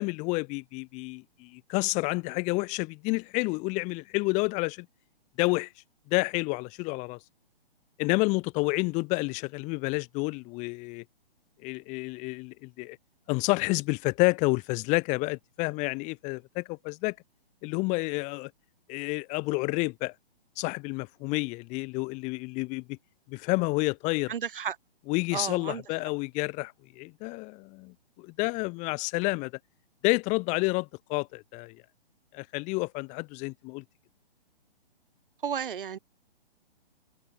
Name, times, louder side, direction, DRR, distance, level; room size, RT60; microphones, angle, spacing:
voice 1, 0.0-4.8 5.4-5.7 6.1-7.2 8.0-11.0 11.6-13.0 13.3-17.1 17.6-18.5 18.9-20.1 20.6-23.0 23.3-24.3 25.1-29.5 30.0-31.8 32.3-33.8, left 26 dB, 25° left, 1.5 m, -29 dB
voice 2, 24.3-24.8 25.3-25.8 35.4-36.0, right 8 dB, 60° right, 7.7 m, -33 dB
open air
figure-of-eight pair, 130°, 30 cm